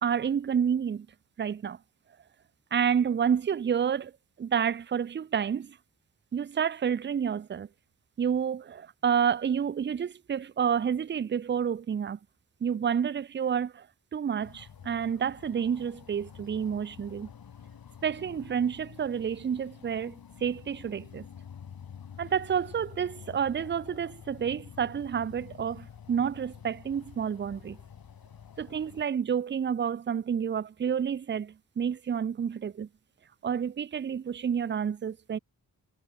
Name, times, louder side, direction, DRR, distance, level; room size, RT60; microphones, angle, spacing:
voice 1, 0.0-1.1 1.4-1.8 2.7-4.1 4.4-5.8 6.3-7.7 8.2-12.2 12.6-13.9 14.1-17.3 18.0-21.3 22.2-27.8 28.6-32.9 33.4-35.4, right 7 dB, 30° right, 0.4 m, -29 dB
sound 1, 14.4-29.0, left 8 dB, 65° left, 1.1 m, -48 dB
wide cardioid pair, 95°, 38 cm